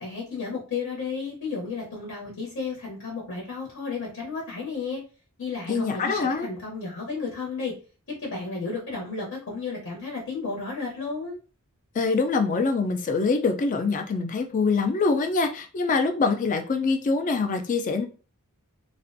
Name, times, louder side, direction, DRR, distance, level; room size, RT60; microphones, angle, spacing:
voice 1, 0.0-5.0 5.4-7.7 8.2-11.4, left 4 dB, 60° left, 0.8 m, -33 dB
voice 2, 5.7-6.5 12.0-18.0, left 4 dB, 35° left, 0.3 m, -24 dB
2.4 x 2.1 x 2.6 m
head